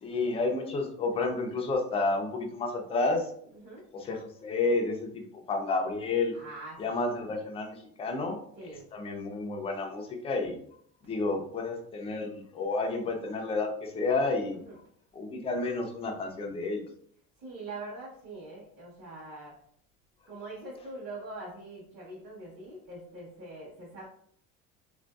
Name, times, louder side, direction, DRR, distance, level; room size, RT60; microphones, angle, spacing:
voice 1, 0.0-3.3 3.9-5.2 5.5-6.3 6.8-10.6 11.0-14.6 15.1-16.8, left 3 dB, 20° left, 3 dB, 0.4 m, -31 dB
voice 2, 6.3-7.1 8.6-8.9 14.5-14.8 17.4-19.6 20.3-24.1, right 2 dB, 35° right, -7 dB, 1.0 m, -43 dB
3.7 x 2.5 x 2.3 m, 0.62 s
cardioid pair, 160°, 31 cm